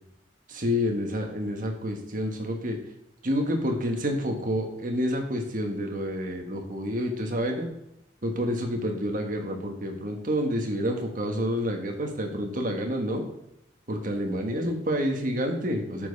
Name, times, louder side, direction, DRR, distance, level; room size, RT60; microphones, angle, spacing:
voice 1, 0.5-2.8 3.2-7.7 8.2-13.2 13.9-16.1, equal, 50° right, 3 dB, 1.4 m, -28 dB
8.8 x 5.4 x 5.1 m, 0.80 s
head